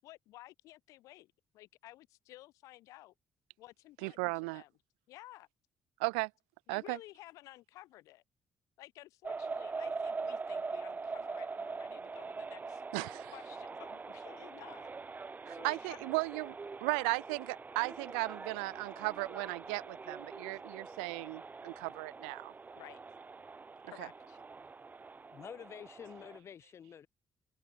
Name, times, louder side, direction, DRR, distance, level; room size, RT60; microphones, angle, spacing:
voice 1, 0.0-3.1 3.6-4.7 5.1-5.5 6.7-8.2 8.8-12.8 13.3-14.9 15.4-16.0 22.7-23.0 23.9-24.4, left 17 dB, 75° left, 6.9 m, -54 dB
voice 2, 4.0-4.6 6.0-6.3 6.7-7.0 12.9-13.3 15.5-16.6 16.8-22.5 24.0-24.1, right 34 dB, 90° right, 0.5 m, -36 dB
sound 1, 9.2-26.4, right 4 dB, 30° right, 6.3 m, -43 dB
voice 3, 25.3-27.1, left 8 dB, 55° left, 2.1 m, -49 dB
supercardioid pair, 60°, 6 cm